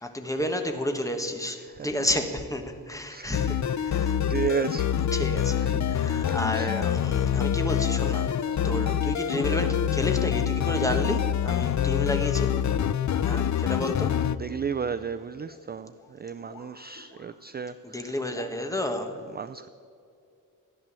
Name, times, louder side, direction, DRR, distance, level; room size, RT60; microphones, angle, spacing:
voice 1, 0.0-4.2 5.1-12.5 13.2-14.2 17.8-19.2, left 1 dB, 10° left, 5 dB, 1.4 m, -31 dB
voice 2, 1.5-2.1 3.1-3.7 4.3-5.0 5.6-5.8 6.3-6.7 8.0-9.2 14.2-18.2 18.5-18.7 19.1-19.7, right 6 dB, 30° right, 11 dB, 0.4 m, -35 dB
sound 1, 3.3-14.4, left 9 dB, 55° left, 0.5 m, -26 dB
sound 2, 6.2-6.5 7.4-7.7 8.0-8.3 8.7-8.8 9.2-9.5 10.1-10.3 11.0-11.3 11.8-12.1 13.0-13.5 14.8-17.4 18.3-18.5, left 4 dB, 80° left, 2.5 m, -49 dB
14.5 x 10.5 x 7.5 m, 2.4 s
wide cardioid pair, 130°, 34 cm